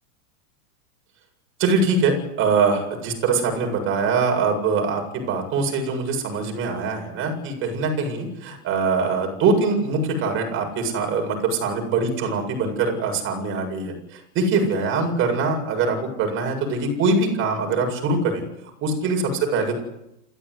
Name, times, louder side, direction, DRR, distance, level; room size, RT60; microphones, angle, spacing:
voice 1, 1.6-18.4 18.8-19.8, right 4 dB, 25° right, 3 dB, 7.7 m, -23 dB
28.0 x 15.5 x 9.9 m, 0.85 s
supercardioid pair, 160°, 45 cm